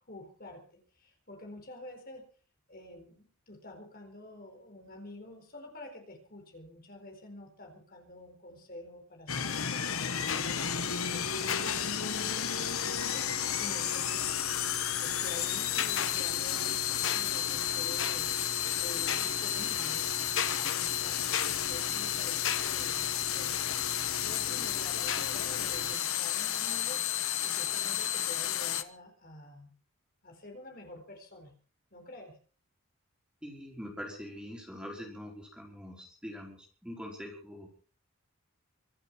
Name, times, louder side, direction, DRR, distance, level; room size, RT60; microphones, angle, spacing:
voice 1, 0.1-2.2 2.7-13.3 13.6-14.5 15.0-18.3 18.8-20.1 20.5-23.7 24.2-27.0 27.4-29.7 30.2-31.5 31.9-32.4, left 1 dB, 40° left, 4 dB, 4.4 m, -48 dB
sound 1, 9.3-28.8, left 10 dB, 75° left, 1.4 m, -32 dB
sound 2, 10.1-26.0, left 5 dB, 60° left, 1.1 m, -39 dB
voice 2, 33.4-37.7, equal, 5° right, 0 dB, 5.2 m, -43 dB
25.0 x 8.6 x 6.2 m, 0.41 s
head